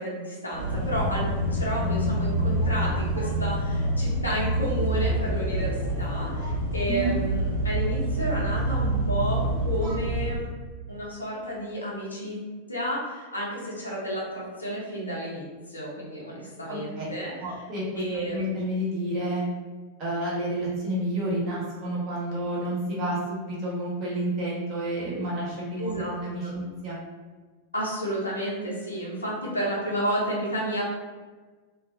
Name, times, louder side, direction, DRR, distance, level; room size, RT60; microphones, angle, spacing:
voice 1, 0.0-10.5 10.9-12.4 12.7-17.3 18.0-18.4 25.8-26.2 26.4-26.6 27.7-30.9, equal, 80° left, -4 dB, 0.6 m, -31 dB
sound 1, 0.5-10.3, right 1 dB, 55° right, 0.8 m, -27 dB
voice 2, 16.7-17.1 17.4-18.0 18.3-19.4 20.0-27.0, right 1 dB, 35° right, -6 dB, 1.0 m, -30 dB
2.3 x 2.2 x 2.5 m, 1.4 s
figure-of-eight pair, 90°, 0 cm